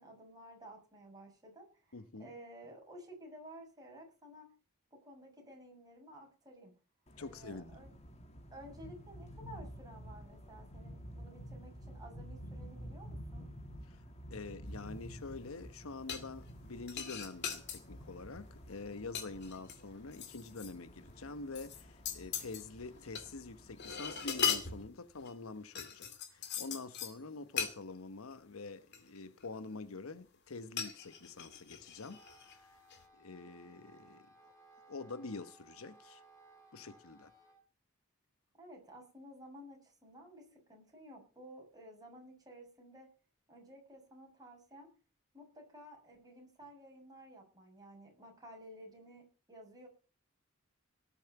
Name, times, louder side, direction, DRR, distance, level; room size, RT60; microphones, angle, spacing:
voice 1, 0.0-4.5 4.9-6.7 7.2-7.9 8.5-13.5 38.6-43.1 43.5-44.9 45.3-49.9, equal, 20° right, 7.3 m, -54 dB
voice 2, 1.9-2.3 7.2-7.9 14.3-32.7 33.1-34.3 34.9-36.2 36.7-37.3, left 3 dB, 90° left, 1.0 m, -46 dB
sound 1, 7.1-24.9, equal, 30° left, 1.9 m, -51 dB
sound 2, 16.1-16.6 16.9-17.8 18.3-18.6 18.9-20.7 21.1-21.2 21.5-23.3 23.5-25.3 25.7-27.1 27.6-27.7 28.3-28.4 28.9-29.6 30.8-32.6 32.9-33.0, left 7 dB, 55° left, 2.4 m, -39 dB
Wind instrument woodwind instrument, 32.0-37.6, right 2 dB, 15° left, 5.1 m, -62 dB
18.5 x 7.3 x 7.0 m
head